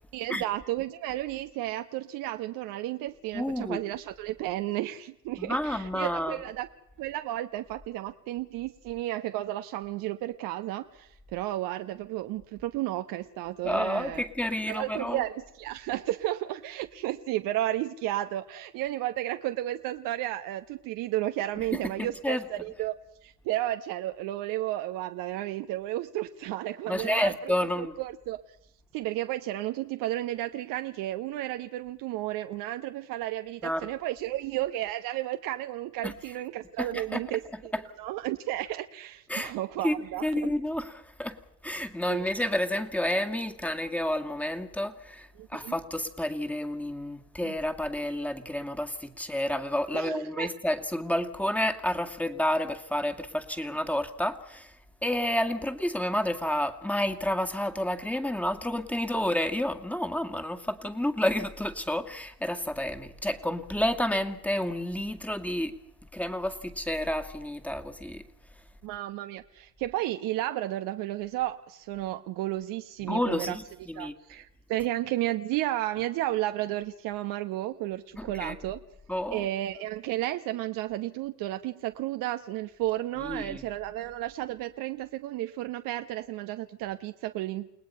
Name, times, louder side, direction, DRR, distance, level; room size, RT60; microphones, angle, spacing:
voice 1, 0.1-6.7 7.0-14.2 14.7-28.4 28.9-37.7 38.0-40.5 42.1-42.3 45.4-45.7 47.4-47.5 49.9-50.5 68.8-73.6 73.9-78.8 79.3-87.7, right 15 dB, 40° right, 8 dB, 1.1 m, -33 dB
voice 2, 3.3-3.8 5.4-6.4 13.6-15.2 21.7-22.4 26.9-27.9 33.6-33.9 36.0-36.1 36.8-37.2 37.5-37.8 39.3-39.5 39.8-40.0 40.2-41.4 41.6-54.7 55.0-65.8 66.1-68.2 73.0-74.1 78.1-78.5 79.1-79.5 83.2-83.6, left 1 dB, 5° left, 6 dB, 2.1 m, -30 dB
30.0 x 19.0 x 5.6 m, 0.79 s
hypercardioid pair, 95°, 49 cm